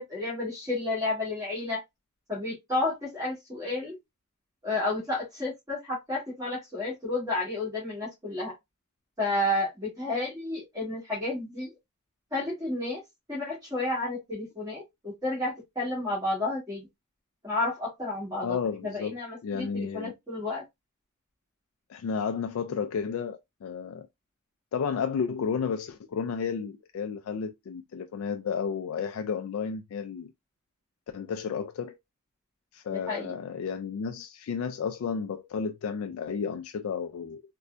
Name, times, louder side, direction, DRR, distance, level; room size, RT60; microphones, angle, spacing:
voice 1, 0.0-1.8 2.3-4.0 4.6-8.5 9.2-11.7 12.3-13.0 13.3-16.9 17.4-18.5 18.8-20.6 32.9-33.3, left 2 dB, 15° right, 1.7 m, -31 dB
voice 2, 18.4-19.2 19.4-20.1 21.9-24.1 24.7-30.3 31.1-32.0 32.7-37.4, left 6 dB, 70° left, 0.3 m, -32 dB
4.2 x 2.2 x 2.4 m
head